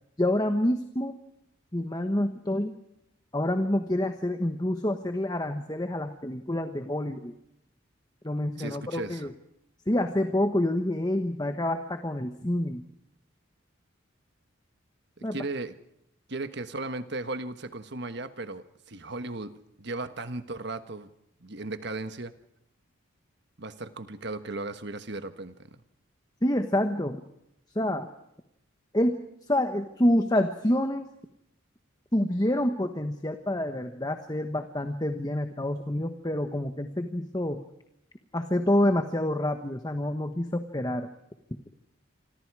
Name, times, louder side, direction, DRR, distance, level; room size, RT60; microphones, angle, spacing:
voice 1, 0.2-1.2 1.7-2.7 3.3-7.3 8.2-9.3 9.9-12.8 15.2-15.4 26.4-27.2 27.7-28.1 28.9-29.2 29.5-31.1 32.1-37.6 38.3-41.1, left 1 dB, 20° left, 7 dB, 1.2 m, -27 dB
voice 2, 8.6-9.3 15.2-15.7 16.3-19.5 19.8-21.1 21.4-22.3 23.6-25.8, right 2 dB, 55° right, 10 dB, 1.4 m, -36 dB
28.0 x 25.5 x 4.9 m, 0.79 s
head